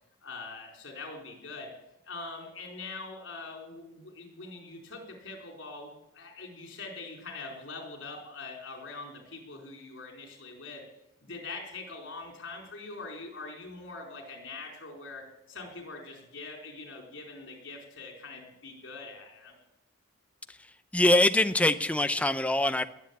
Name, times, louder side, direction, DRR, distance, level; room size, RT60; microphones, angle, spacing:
voice 1, 0.2-1.7 2.0-10.8 11.2-19.5, left 3 dB, 65° left, 2 dB, 4.6 m, -43 dB
voice 2, 20.9-22.8, left 1 dB, 5° left, 10 dB, 0.6 m, -23 dB
20.5 x 8.2 x 8.6 m, 0.85 s
head